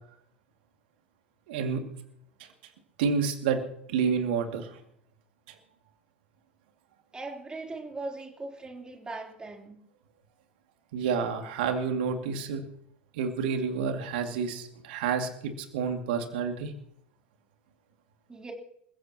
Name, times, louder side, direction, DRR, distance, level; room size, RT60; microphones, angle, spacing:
voice 1, 1.5-1.8 3.0-3.6 3.9-4.7 10.9-12.6 13.1-16.7, right 6 dB, 60° right, 5 dB, 2.4 m, -29 dB
voice 2, 7.1-9.8 18.3-18.5, right 3 dB, 15° right, 1 dB, 3.6 m, -39 dB
28.0 x 15.5 x 3.0 m, 0.71 s
figure-of-eight pair, 80°, 6 cm